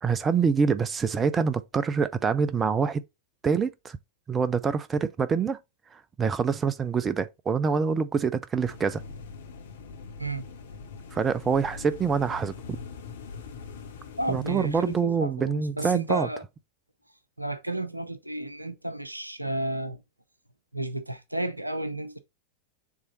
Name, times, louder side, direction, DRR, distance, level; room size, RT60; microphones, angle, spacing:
voice 1, 0.0-3.0 3.4-4.0 4.3-5.6 5.9-9.0 11.1-12.8 14.3-16.3, right 5 dB, 20° right, 0.5 m, -26 dB
sound 1, 8.6-15.0, left 5 dB, 60° left, 1.1 m, -43 dB
voice 2, 14.2-16.4 17.4-20.0 20.7-22.2, right 1 dB, 85° right, 0.7 m, -32 dB
7.2 x 3.2 x 4.0 m
figure-of-eight pair, 90°, 0 cm